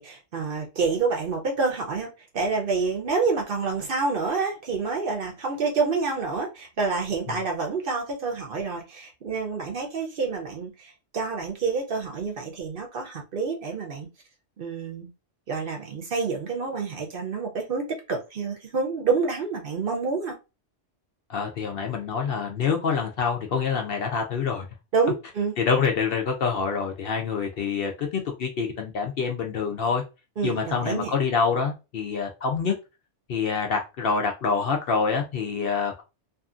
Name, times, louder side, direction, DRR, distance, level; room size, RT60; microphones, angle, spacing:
voice 1, 0.0-2.1 2.3-14.1 14.6-15.1 15.5-20.4 24.9-25.6 30.4-31.1, right 4 dB, 55° right, 0.7 m, -28 dB
voice 2, 21.3-24.7 25.6-30.0 30.4-32.7 33.3-36.0, left 5 dB, 60° left, 0.6 m, -26 dB
2.7 x 2.5 x 2.4 m
omnidirectional pair, 1.2 m